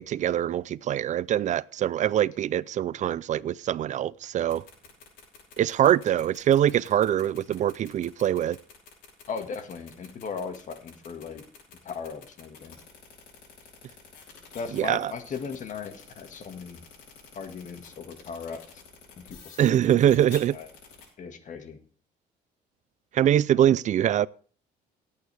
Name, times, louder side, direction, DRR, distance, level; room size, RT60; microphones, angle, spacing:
voice 1, 0.0-4.6 5.6-8.6 14.7-15.1 19.6-20.6 23.1-24.3, right 11 dB, 45° right, 0.4 m, -23 dB
sound 1, 4.4-21.0, left 6 dB, 80° left, 5.5 m, -49 dB
voice 2, 9.3-11.4 11.8-12.8 14.5-16.8 17.4-18.8 19.2-19.8 20.5-20.7 21.2-21.8, left 5 dB, 45° left, 1.8 m, -37 dB
18.0 x 8.5 x 3.4 m
cardioid pair, 110°, 17 cm